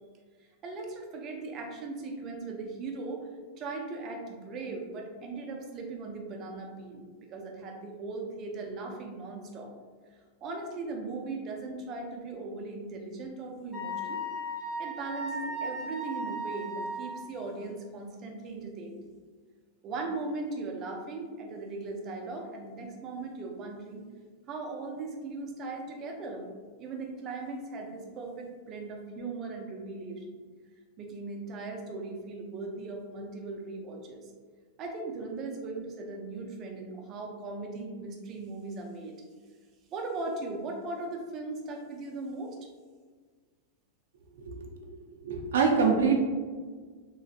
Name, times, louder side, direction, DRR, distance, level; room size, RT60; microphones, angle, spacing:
voice 1, 0.6-3.3 3.6-9.7 10.4-14.2 14.8-19.0 19.8-24.0 24.5-26.5 26.8-30.3 31.0-34.3 34.8-39.2 39.9-42.6, right 3 dB, 30° right, 2 dB, 0.5 m, -38 dB
Wind instrument woodwind instrument, 13.7-17.2, equal, ahead, 0.7 m, -36 dB
voice 2, 45.2-46.2, right 5 dB, 85° right, 1 dB, 0.4 m, -24 dB
3.0 x 2.6 x 2.4 m, 1.5 s
supercardioid pair, 145°, 0 cm